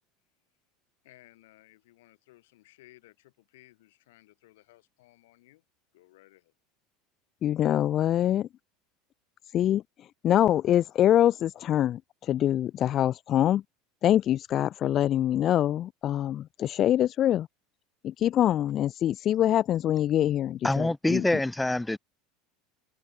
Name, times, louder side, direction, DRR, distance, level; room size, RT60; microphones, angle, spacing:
voice 1, 1.0-5.6 5.9-6.5, left 18 dB, 60° left, 5.9 m, -58 dB
voice 2, 7.4-8.5 9.5-13.6 14.0-17.5 18.0-21.2, left 11 dB, 40° left, 0.4 m, -24 dB
voice 3, 20.6-22.0, left 2 dB, 5° left, 1.4 m, -25 dB
figure-of-eight pair, 70°, 0 cm